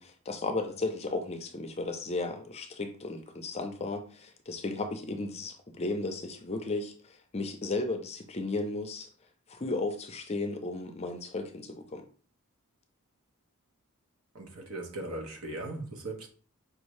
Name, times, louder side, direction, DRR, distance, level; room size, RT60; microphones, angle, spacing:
voice 1, 0.0-9.1 9.5-12.0, left 2 dB, 30° left, 0.5 m, -34 dB
voice 2, 14.3-16.3, right 2 dB, 75° right, 1.1 m, -38 dB
4.9 x 2.7 x 3.1 m
head